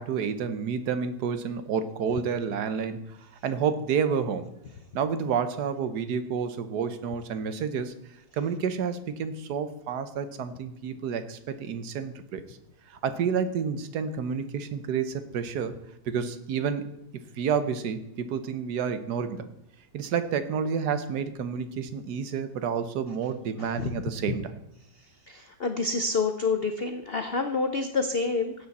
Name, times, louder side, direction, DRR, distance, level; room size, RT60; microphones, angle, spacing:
voice 1, 0.0-3.2 3.4-4.5 4.9-7.9 8.3-12.6 12.9-15.7 16.1-16.8 17.4-19.5 19.9-24.6, right 6 dB, 60° right, 11 dB, 1.3 m, -29 dB
voice 2, 23.6-23.9 25.3-28.5, left 4 dB, 85° left, 7 dB, 0.5 m, -28 dB
15.5 x 8.5 x 4.2 m, 0.80 s
omnidirectional pair, 2.1 m